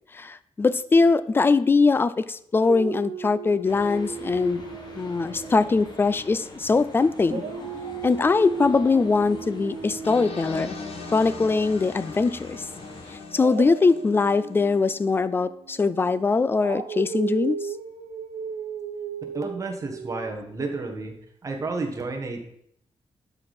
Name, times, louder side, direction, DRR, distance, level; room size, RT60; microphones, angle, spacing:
voice 1, 0.1-4.6 5.0-7.4 8.0-10.8 11.1-12.7 13.3-17.6, left 4 dB, 20° left, 15 dB, 0.3 m, -22 dB
Dog, 2.7-6.8 7.2-12.2 13.3-20.3, right 6 dB, 85° right, 0.9 m, -36 dB
sound 1, 3.6-13.2, left 2 dB, 40° left, 1.5 m, -43 dB
sound 2, 10.0-15.0, left 4 dB, 75° left, 1.5 m, -40 dB
voice 2, 19.3-21.1 21.4-22.4, right 3 dB, 30° right, 2 dB, 1.4 m, -31 dB
12.0 x 4.9 x 4.2 m, 0.71 s
wide cardioid pair, 170°, 11 cm